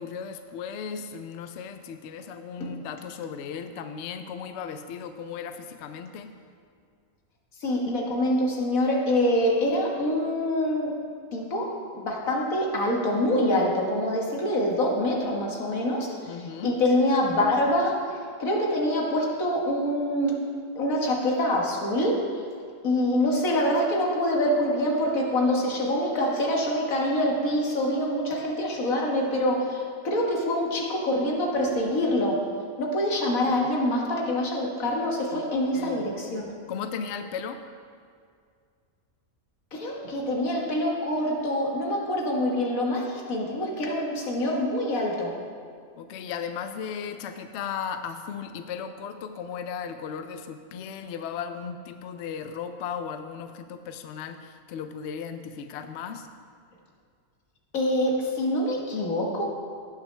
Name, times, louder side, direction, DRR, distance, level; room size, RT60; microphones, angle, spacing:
voice 1, 0.0-6.3 16.3-16.8 33.5-33.7 35.3-35.4 35.7-36.1 36.7-37.6 46.0-56.3, left 7 dB, 65° left, 8 dB, 0.8 m, -36 dB
voice 2, 7.6-11.0 11.3-20.4 20.8-22.4 22.8-32.4 32.8-36.4 39.7-45.4 57.7-59.4, left 1 dB, 85° left, -1 dB, 1.8 m, -25 dB
17.5 x 6.3 x 3.2 m, 2.2 s
omnidirectional pair, 1.4 m